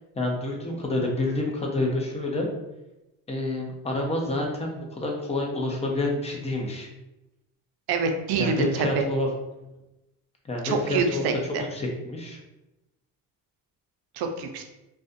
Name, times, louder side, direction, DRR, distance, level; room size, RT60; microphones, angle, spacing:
voice 1, 0.2-2.5 3.3-6.9 8.4-9.3 10.4-11.3 11.7-12.4, left 2 dB, 15° left, 0 dB, 0.5 m, -28 dB
voice 2, 7.9-9.0 10.6-11.6 14.2-14.6, right 5 dB, 65° right, 5 dB, 0.5 m, -26 dB
2.4 x 2.2 x 2.5 m, 0.96 s
cardioid pair, 90°, 41 cm